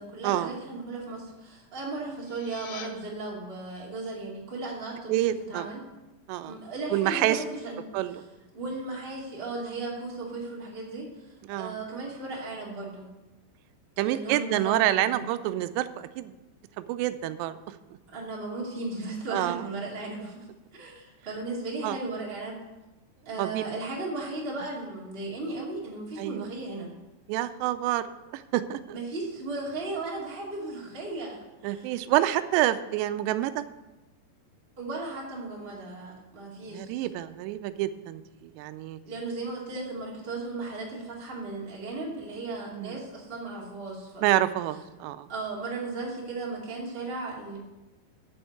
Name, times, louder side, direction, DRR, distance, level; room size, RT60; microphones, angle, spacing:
voice 1, 0.0-5.8 6.4-8.2 8.5-13.1 14.0-15.2 18.1-20.5 20.7-22.6 23.2-26.9 28.9-32.0 34.8-37.1 39.0-44.2 45.3-47.6, right 3 dB, 20° right, -4 dB, 1.8 m, -36 dB
sound 1, 2.1-2.9, left 8 dB, 75° left, 2.3 m, -44 dB
voice 2, 5.1-5.6 6.3-6.5 6.9-7.4 7.9-8.2 11.5-11.8 14.0-15.9 16.2-16.3 16.8-17.6 19.3-19.6 21.8-22.0 23.4-23.6 26.2-26.5 27.3-29.0 31.6-33.6 36.7-38.2 38.6-39.0 42.7-43.0 44.2-45.3, right 14 dB, 90° right, 12 dB, 2.8 m, -27 dB
8.0 x 7.1 x 7.7 m, 1.0 s
omnidirectional pair, 4.9 m